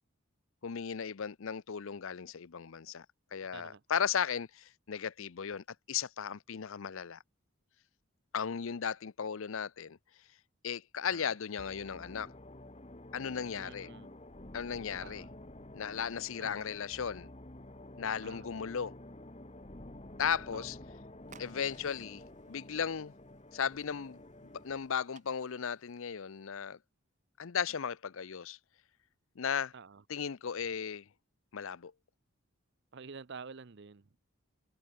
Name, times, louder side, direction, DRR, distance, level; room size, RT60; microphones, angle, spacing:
voice 1, 0.6-3.1 3.3-7.2 8.3-10.0 10.6-12.3 13.1-13.9 14.5-15.2 15.7-17.3 18.0-18.9 20.2-20.8 21.4-23.1 23.5-26.8 27.4-28.6 29.4-29.7 30.1-31.0 31.5-31.9, left 7 dB, 65° left, 0.6 m, -36 dB
voice 2, 3.5-3.8 11.1-11.3 13.6-14.1 15.0-15.3 16.4-16.7 18.2-18.5 20.5-20.7 29.7-30.0 32.9-34.1, right 5 dB, 50° right, 0.6 m, -49 dB
sound 1, 11.6-24.9, left 1 dB, 30° left, 1.6 m, -50 dB
sound 2, 21.2-26.4, right 5 dB, 35° right, 5.8 m, -63 dB
head